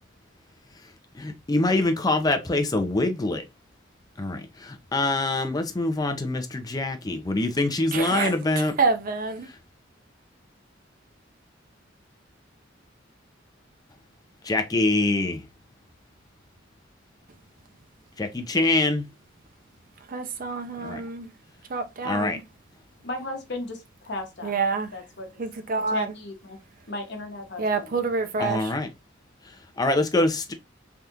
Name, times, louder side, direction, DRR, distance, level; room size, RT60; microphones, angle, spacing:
voice 1, 1.2-3.4 4.2-8.7 14.4-15.4 18.2-19.0 20.8-21.0 22.1-22.4 28.4-28.9 29.8-30.5, left 2 dB, 20° left, 0.5 m, -24 dB
voice 2, 7.9-9.5 20.1-21.3 21.7-22.4 24.4-24.9 25.4-26.1 27.6-28.7, right 4 dB, 45° right, 0.5 m, -27 dB
voice 3, 23.0-24.6 24.9-25.4 25.9-26.6 26.9-27.9, left 2 dB, 60° left, 1.0 m, -35 dB
3.4 x 2.4 x 2.7 m
head